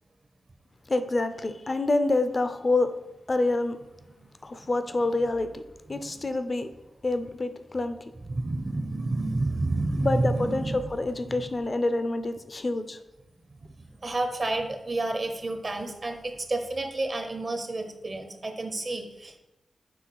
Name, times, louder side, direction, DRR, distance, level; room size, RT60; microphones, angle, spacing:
voice 1, 0.9-2.9 3.3-3.8 4.4-5.6 5.9-6.7 7.0-8.0 10.0-13.0, left 2 dB, 40° left, 9 dB, 0.6 m, -27 dB
voice 2, 8.3-10.8 11.3-11.4 14.0-19.4, right 2 dB, 45° right, 5 dB, 0.8 m, -30 dB
6.4 x 3.3 x 4.8 m, 0.96 s
cardioid pair, 55°, 0 cm